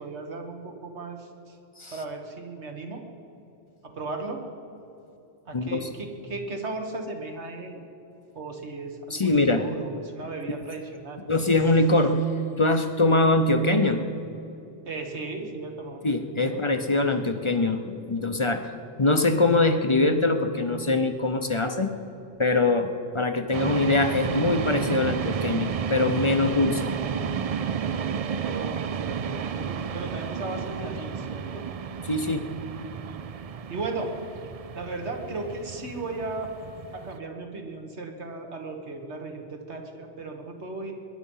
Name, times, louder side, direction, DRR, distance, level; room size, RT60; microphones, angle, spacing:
voice 1, 0.0-1.6 1.9-3.0 3.8-4.4 5.5-7.8 8.4-11.2 14.9-16.0 16.3-16.6 28.4-31.6 33.7-34.1 34.7-36.5 36.9-40.9, right 3 dB, 75° right, 3 dB, 1.9 m, -36 dB
voice 2, 5.5-5.9 9.1-9.6 11.3-12.2 12.6-14.0 16.0-18.7 19.0-21.9 22.4-26.9 32.0-32.4, left 2 dB, 30° left, 7 dB, 0.7 m, -23 dB
sound 1, 23.5-37.2, right 7 dB, 55° right, 0.4 m, -32 dB
22.5 x 11.0 x 5.6 m, 2.8 s
omnidirectional pair, 1.1 m